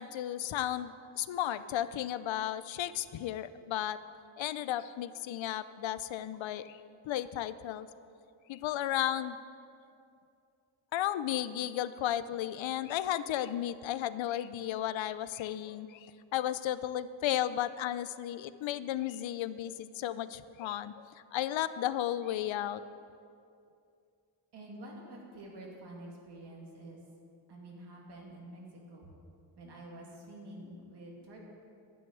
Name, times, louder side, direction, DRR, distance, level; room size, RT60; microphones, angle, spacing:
voice 1, 0.0-4.0 4.4-7.9 8.5-9.4 10.9-21.0 21.3-22.8, left 12 dB, 80° left, 15 dB, 0.6 m, -34 dB
voice 2, 24.5-27.0 27.5-29.1 29.6-31.4, right 1 dB, 60° right, -2 dB, 2.4 m, -48 dB
11.0 x 6.4 x 9.3 m, 2.5 s
wide cardioid pair, 180°, 46 cm